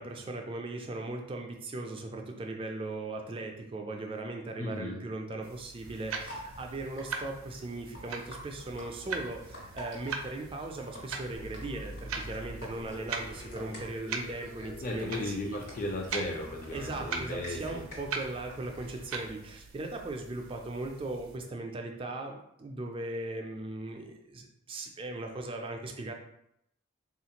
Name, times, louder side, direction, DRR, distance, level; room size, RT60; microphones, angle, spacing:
voice 1, 0.0-15.6 16.7-26.1, right 2 dB, 25° right, 3 dB, 0.3 m, -38 dB
voice 2, 4.6-5.0 14.8-17.8, left 1 dB, 40° left, -1 dB, 0.5 m, -36 dB
sound 1, 5.4-21.4, right 4 dB, 90° right, 0.4 m, -42 dB
sound 2, 5.8-19.3, equal, 65° left, 1.4 m, -48 dB
sound 3, 11.4-16.1, left 2 dB, 90° left, 0.7 m, -47 dB
3.7 x 2.4 x 2.8 m, 0.77 s
head